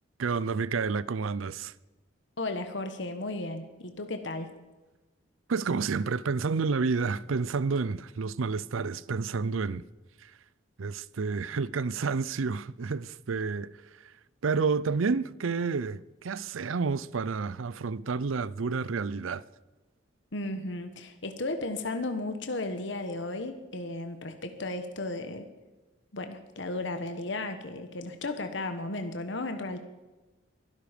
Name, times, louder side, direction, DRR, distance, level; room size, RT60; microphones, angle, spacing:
voice 1, 0.2-1.7 5.5-9.8 10.2-10.3 10.8-14.1 14.4-19.4, right 4 dB, 85° right, 0.5 m, -30 dB
voice 2, 2.4-4.5 20.3-25.5 26.1-29.8, left 2 dB, 65° left, 1.3 m, -34 dB
22.5 x 12.0 x 5.1 m
head